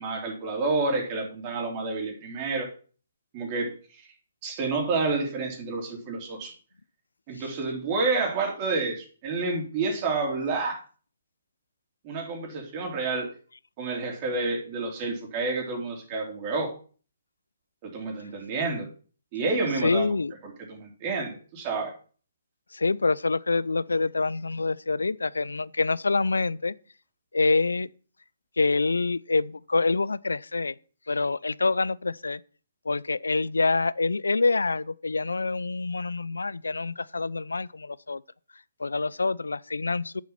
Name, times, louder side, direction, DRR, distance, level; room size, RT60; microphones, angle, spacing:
voice 1, 0.0-2.7 3.3-4.1 4.4-6.5 7.3-10.8 12.0-13.3 13.8-16.7 17.8-18.9 19.3-20.2 20.7-21.9, right 3 dB, 35° right, 3.6 m, -29 dB
voice 2, 19.6-20.3 22.7-26.7 27.3-27.9 28.6-30.7 31.1-32.4 32.9-38.2 38.8-40.2, left 3 dB, 85° left, 0.5 m, -26 dB
9.5 x 7.1 x 5.8 m
figure-of-eight pair, 140°, 0 cm